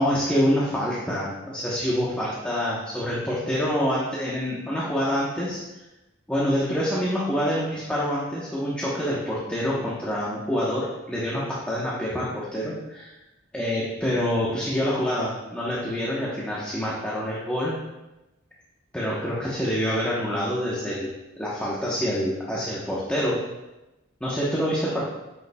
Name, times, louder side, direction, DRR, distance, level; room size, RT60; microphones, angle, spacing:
voice 1, 0.0-5.8 6.3-13.2 13.5-17.7 18.9-23.4 24.2-25.0, equal, 5° left, -7 dB, 1.1 m, -26 dB
9.2 x 6.9 x 2.3 m, 1.0 s
head